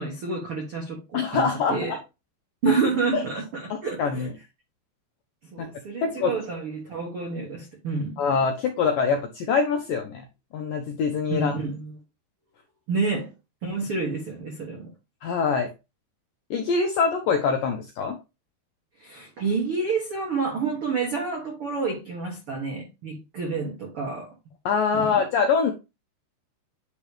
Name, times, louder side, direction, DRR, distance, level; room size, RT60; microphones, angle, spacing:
voice 1, 0.0-2.0 2.6-4.3 5.5-8.2 11.3-11.9 12.9-13.3 13.6-14.9 19.0-24.3 24.9-25.1, right 4 dB, 80° right, 1.2 m, -29 dB
voice 2, 1.1-2.0 3.1-3.2 4.0-4.3 5.6-5.7 6.0-6.3 8.2-10.2 10.5-11.5 15.2-15.7 16.5-18.2 24.7-25.7, left 5 dB, 80° left, 1.9 m, -24 dB
10.0 x 3.6 x 3.4 m
omnidirectional pair, 5.1 m